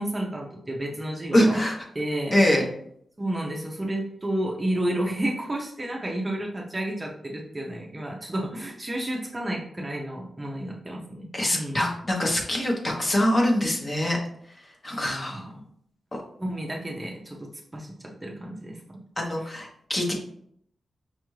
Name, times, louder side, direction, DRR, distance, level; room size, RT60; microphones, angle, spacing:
voice 1, 0.0-1.6 1.9-2.3 3.2-11.3 11.5-11.8 14.9-15.6 16.4-17.5 17.7-17.9 18.2-18.8, right 1 dB, 15° right, -1 dB, 0.5 m, -31 dB
voice 2, 1.3-1.8 2.3-2.7 11.3-14.2 14.8-15.5 19.2-20.1, left 1 dB, 30° left, 0 dB, 0.8 m, -23 dB
5.4 x 2.4 x 3.1 m, 0.67 s
wide cardioid pair, 150°, 0 cm